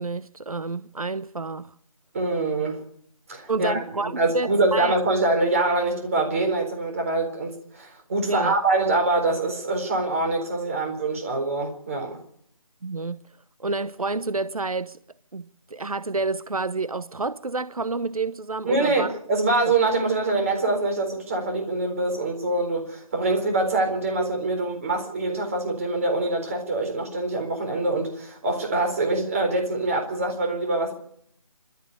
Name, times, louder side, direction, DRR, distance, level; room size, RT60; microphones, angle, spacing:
voice 1, 0.0-1.7 3.5-5.0 8.3-8.6 12.8-13.2 13.6-15.0 15.3-19.1, right 3 dB, 85° right, 1.0 m, -29 dB
voice 2, 2.1-2.8 3.3-12.2 18.6-30.9, right 2 dB, 25° right, 4.2 m, -24 dB
25.0 x 13.0 x 8.5 m
figure-of-eight pair, 170°, 18 cm